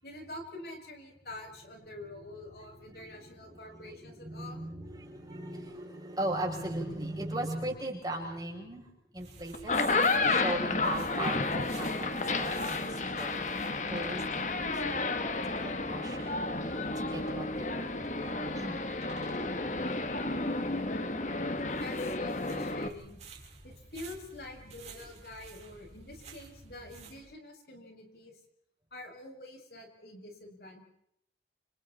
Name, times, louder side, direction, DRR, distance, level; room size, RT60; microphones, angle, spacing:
voice 1, 0.0-4.6 21.8-23.2 23.6-28.4 28.9-30.8, left 1 dB, 60° left, 1 dB, 7.1 m, -46 dB
voice 2, 2.9-9.9 10.3-16.3 16.6-18.8 19.8-19.9, right 1 dB, 20° right, -1 dB, 7.7 m, -39 dB
sound 1, 9.1-27.2, right 2 dB, 40° right, 5.1 m, -51 dB
sound 2, 9.5-22.9, left 3 dB, 45° left, 1.7 m, -31 dB
30.0 x 29.0 x 4.4 m, 0.76 s
head